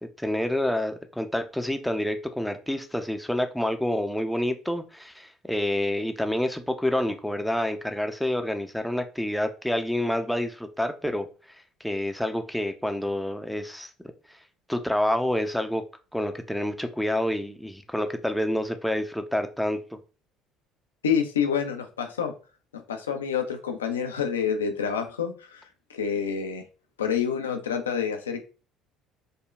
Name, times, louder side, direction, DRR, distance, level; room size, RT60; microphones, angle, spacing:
voice 1, 0.2-11.3 11.8-13.9 14.7-15.8 16.1-20.0, left 1 dB, ahead, 6 dB, 0.5 m, -28 dB
voice 2, 21.0-22.3 22.7-26.6 27.0-28.4, left 7 dB, 85° left, 5 dB, 0.4 m, -28 dB
5.0 x 2.2 x 2.3 m, 0.34 s
figure-of-eight pair, 55°, 0 cm